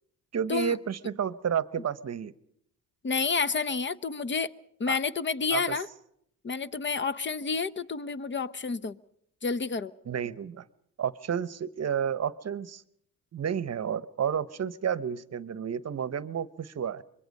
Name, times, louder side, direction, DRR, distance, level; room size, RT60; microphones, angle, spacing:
voice 1, 0.3-2.3 4.9-5.0 5.5-5.8 10.1-10.6 11.0-12.8 13.3-17.0, right 8 dB, 45° right, 17 dB, 0.9 m, -31 dB
voice 2, 3.0-4.5 4.8-5.9 6.4-9.0 9.4-9.9, left 5 dB, 30° left, 16 dB, 0.8 m, -29 dB
25.0 x 22.5 x 5.3 m, 0.72 s
cardioid pair, 90°, 36 cm